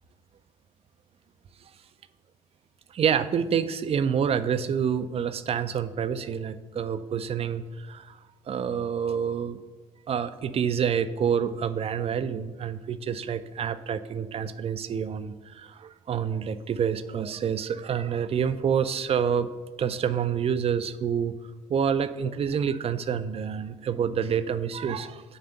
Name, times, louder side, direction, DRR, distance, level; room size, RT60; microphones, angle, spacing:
voice 1, 2.9-8.2 8.5-9.6 10.1-19.5 19.8-21.4 21.7-25.4, right 7 dB, 35° right, 12 dB, 0.5 m, -28 dB
9.6 x 3.3 x 6.7 m, 1.3 s
figure-of-eight pair, 55°, 18 cm